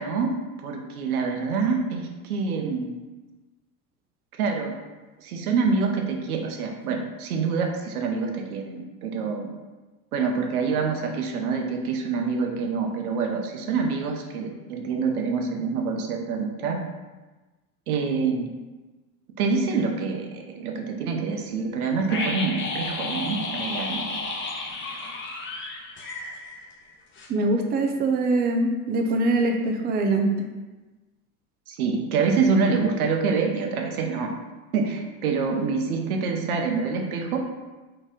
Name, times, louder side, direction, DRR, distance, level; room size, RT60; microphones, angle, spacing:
voice 1, 0.0-2.9 4.4-4.7 5.2-9.5 10.1-16.8 17.9-18.5 19.4-24.0 31.7-34.3 34.7-37.5, right 5 dB, 85° right, 3 dB, 0.8 m, -26 dB
sound 1, 22.1-26.9 27.2-27.3, left 3 dB, 25° left, 0.9 m, -32 dB
voice 2, 27.3-30.5, right 2 dB, 25° right, 4 dB, 0.4 m, -23 dB
4.1 x 3.2 x 3.6 m, 1.2 s
hypercardioid pair, 100°, 43 cm